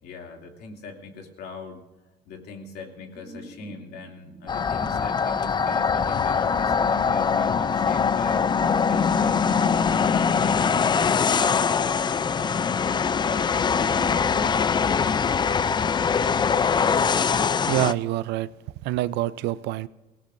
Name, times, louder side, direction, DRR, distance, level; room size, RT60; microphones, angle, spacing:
voice 1, 0.0-1.9 2.2-8.4 8.8-14.8, left 4 dB, 75° left, 2.7 m, -41 dB
sound 1, 3.1-14.6, right 1 dB, 10° right, 4.0 m, -45 dB
sound 2, 4.5-17.9, left 6 dB, 25° left, 0.4 m, -22 dB
voice 2, 17.7-18.5 18.8-19.9, right 15 dB, 85° right, 0.5 m, -26 dB
25.5 x 17.5 x 2.6 m
cardioid pair, 110°, 17 cm